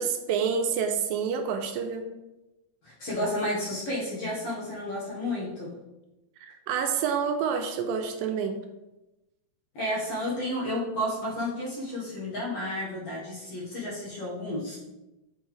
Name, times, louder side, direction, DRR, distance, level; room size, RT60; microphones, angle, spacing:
voice 1, 0.0-2.1 6.4-8.6, right 6 dB, 90° right, 5 dB, 2.3 m, -28 dB
voice 2, 2.8-5.7 9.7-14.8, left 1 dB, 55° left, -6 dB, 2.0 m, -31 dB
8.2 x 4.5 x 3.2 m, 1.0 s
omnidirectional pair, 4.0 m